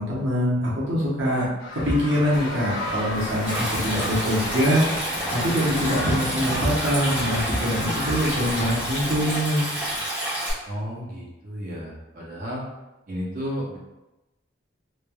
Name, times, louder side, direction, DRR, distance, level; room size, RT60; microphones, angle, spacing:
voice 1, 0.0-1.5 1.7-4.8 5.3-9.6, equal, 70° right, -7 dB, 0.8 m, -24 dB
sound 1, 1.6-8.7, left 1 dB, 70° left, 0.8 m, -32 dB
sound 2, 3.1-10.0, left 1 dB, 35° left, 1.1 m, -43 dB
Stream, 3.5-10.5, right 1 dB, 10° right, 0.7 m, -29 dB
voice 2, 10.7-12.6 13.1-13.8, equal, 45° right, -5 dB, 0.6 m, -33 dB
3.2 x 2.2 x 2.2 m, 0.99 s
head